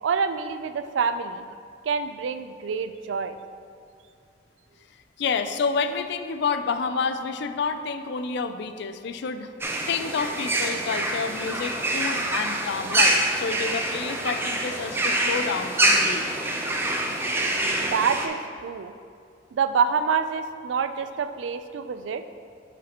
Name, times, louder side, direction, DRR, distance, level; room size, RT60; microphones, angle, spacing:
voice 1, 0.0-1.4 1.9-3.4 17.6-18.9 19.5-22.2, right 6 dB, 80° right, 11 dB, 0.3 m, -27 dB
voice 2, 5.2-9.5 9.9-16.3, left 5 dB, 65° left, 10 dB, 0.4 m, -29 dB
sound 1, 9.6-18.3, right 1 dB, 15° right, 0.5 m, -25 dB
9.1 x 5.0 x 2.9 m, 2.3 s
head